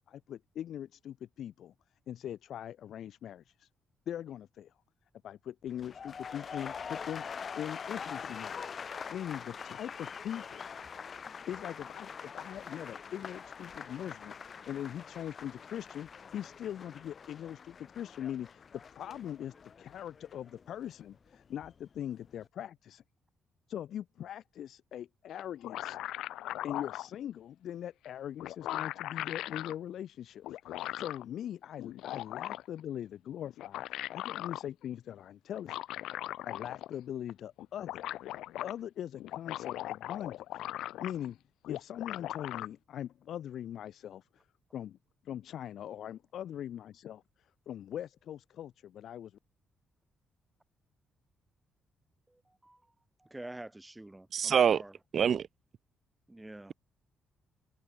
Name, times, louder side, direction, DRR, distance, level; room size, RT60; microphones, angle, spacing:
voice 1, 0.1-1.7 2.1-3.7 4.1-4.7 5.2-10.7 11.5-14.3 14.7-23.0 23.7-26.0 26.6-33.8 34.1-35.8 36.4-38.1 38.6-40.4 41.0-41.4 41.7-44.5 44.7-45.0 45.2-49.3, left 10 dB, 70° left, 1.6 m, -41 dB
sound 1, 5.7-21.7 22.0-22.5, left 6 dB, 45° left, 6.3 m, -44 dB
sound 2, 25.4-27.1 28.0-28.1 28.4-29.7 30.4-31.2 31.8-32.8 33.5-34.6 35.5-37.0 37.3-37.4 37.6-38.7 39.2-41.3 41.6-42.7, left 14 dB, 85° left, 2.6 m, -39 dB
voice 2, 52.3-52.8 53.2-54.9 56.3-56.7, right 1 dB, 10° right, 5.6 m, -47 dB
voice 3, 54.3-54.8 55.1-55.4, right 8 dB, 55° right, 0.7 m, -25 dB
cardioid pair, 90°, 0 cm